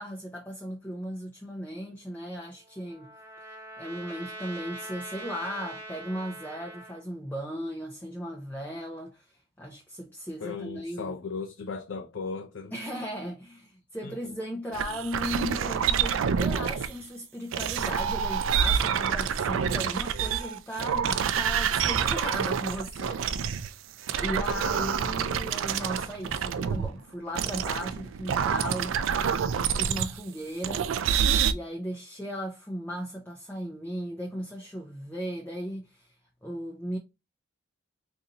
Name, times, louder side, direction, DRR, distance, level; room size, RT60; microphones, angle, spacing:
voice 1, 0.0-3.1 3.8-11.2 12.7-23.6 24.2-28.9 29.6-30.9 31.5-36.1 36.4-37.0, equal, 10° left, 0.5 m, -36 dB
Trumpet, 2.4-7.0, right 1 dB, 10° right, 0.9 m, -43 dB
voice 2, 10.4-12.7 14.0-14.1, left 4 dB, 80° left, 0.5 m, -36 dB
sound 1, 14.7-16.9 17.5-23.7 24.1-26.9 27.3-30.2 30.6-31.5, right 7 dB, 85° right, 0.4 m, -27 dB
4.0 x 2.6 x 2.8 m
head